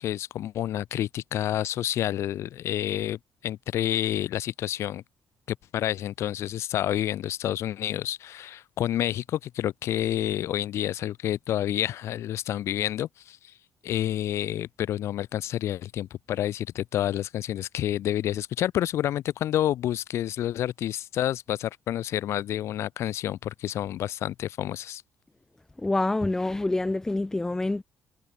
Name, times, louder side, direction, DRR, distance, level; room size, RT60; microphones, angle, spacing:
voice 1, 0.0-5.0 5.5-13.5 13.8-25.0, left 12 dB, 65° left, 7.1 m, -29 dB
voice 2, 25.8-27.8, left 2 dB, 10° left, 1.1 m, -26 dB
cardioid pair, 160°, 5 cm